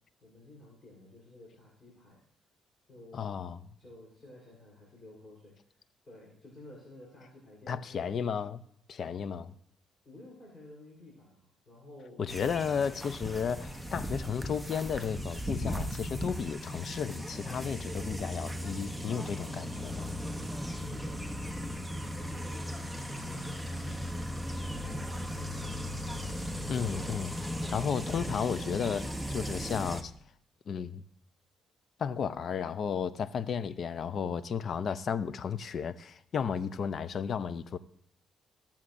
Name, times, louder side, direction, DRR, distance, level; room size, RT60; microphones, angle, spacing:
voice 1, 0.2-2.2 2.9-3.3 3.8-8.1 10.0-12.2 20.8-26.0 27.5-27.7, left 1 dB, 30° left, 3.7 m, -53 dB
voice 2, 3.1-3.6 7.7-8.6 8.9-9.5 12.2-20.1 26.7-27.3 27.7-30.1 30.7-31.0 32.0-37.8, left 7 dB, 55° left, 0.4 m, -33 dB
sound 1, 12.3-30.0, equal, ahead, 0.7 m, -37 dB
15.5 x 7.1 x 2.5 m
cardioid pair, 90°, 0 cm